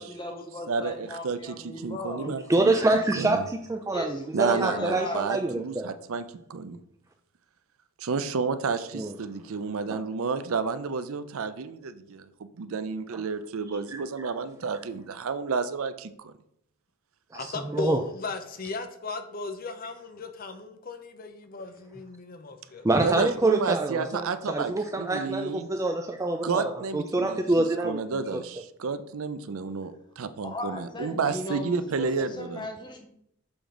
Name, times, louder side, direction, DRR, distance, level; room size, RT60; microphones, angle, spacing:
voice 1, 0.0-2.6 3.9-4.2 4.5-5.2 30.4-33.1, left 2 dB, 20° left, 3 dB, 1.0 m, -37 dB
voice 2, 0.7-2.8 3.2-3.4 4.3-6.2 6.5-6.8 8.0-12.3 12.6-16.3 23.0-25.7 26.4-32.6, right 5 dB, 75° right, 12 dB, 0.5 m, -31 dB
voice 3, 2.3-5.9 8.9-9.1 9.9-10.0 13.9-14.0 17.3-17.5 17.7-18.0 22.8-28.0, right 2 dB, 15° right, 5 dB, 0.3 m, -26 dB
voice 4, 17.3-22.8, left 3 dB, 40° left, 7 dB, 0.7 m, -36 dB
7.0 x 3.8 x 5.0 m, 0.74 s
head